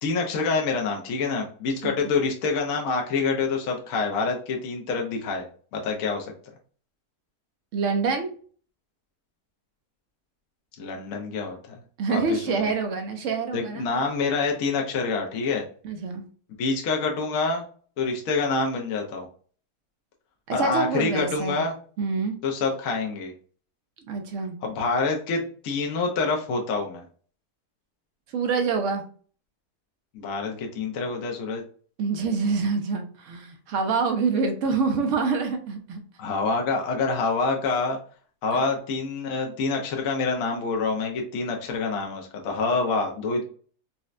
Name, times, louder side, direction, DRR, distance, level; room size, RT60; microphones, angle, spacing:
voice 1, 0.0-5.5 5.7-6.3 10.8-11.8 12.1-12.7 13.5-15.7 16.6-17.6 18.0-19.3 20.5-21.7 22.4-23.3 24.6-27.1 30.1-31.6 36.2-38.0 38.4-43.4, left 4 dB, 65° left, 1 dB, 1.0 m, -26 dB
voice 2, 7.7-8.3 12.0-13.9 15.8-16.2 20.5-21.6 22.0-22.3 24.1-24.6 28.3-29.0 32.0-36.0 38.5-38.6, right 4 dB, 65° right, 5 dB, 0.8 m, -26 dB
4.1 x 2.1 x 2.4 m, 0.43 s
omnidirectional pair, 1.6 m